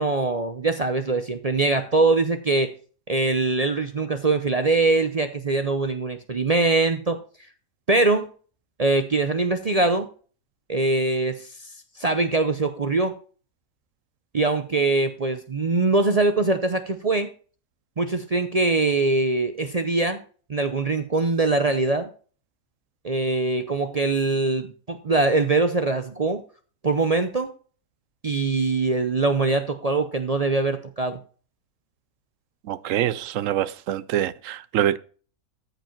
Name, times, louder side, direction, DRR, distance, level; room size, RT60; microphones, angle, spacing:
voice 1, 0.0-2.7 3.1-7.2 7.9-8.3 8.8-10.1 10.7-11.5 12.0-13.1 14.3-17.3 18.0-20.2 20.5-22.1 23.0-26.4 26.8-27.5 28.2-31.2, right 3 dB, 45° right, 0.5 m, -22 dB
voice 2, 32.6-35.0, right 11 dB, 65° right, 0.9 m, -25 dB
14.0 x 5.1 x 4.5 m
omnidirectional pair, 1.6 m